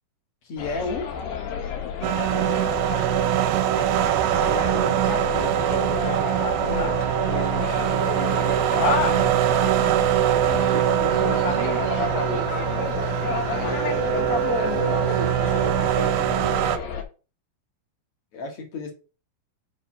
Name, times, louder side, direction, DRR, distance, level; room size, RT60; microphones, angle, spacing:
voice 1, 0.5-1.1 4.5-9.8 10.4-12.5 13.5-16.6 18.3-18.9, left 3 dB, 45° left, 2.3 m, -34 dB
sound 1, 0.6-17.0, left 6 dB, 75° left, 3.0 m, -30 dB
sound 2, 2.0-16.8, right 13 dB, 85° right, 2.4 m, -23 dB
5.9 x 5.6 x 5.7 m
omnidirectional pair, 4.3 m